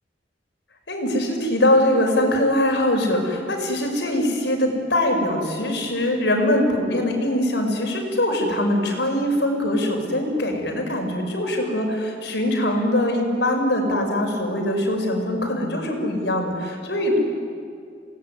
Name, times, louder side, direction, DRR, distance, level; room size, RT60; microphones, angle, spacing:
voice 1, 0.9-17.2, left 1 dB, 70° left, 2 dB, 5.5 m, -22 dB
28.5 x 18.5 x 9.7 m, 2.3 s
head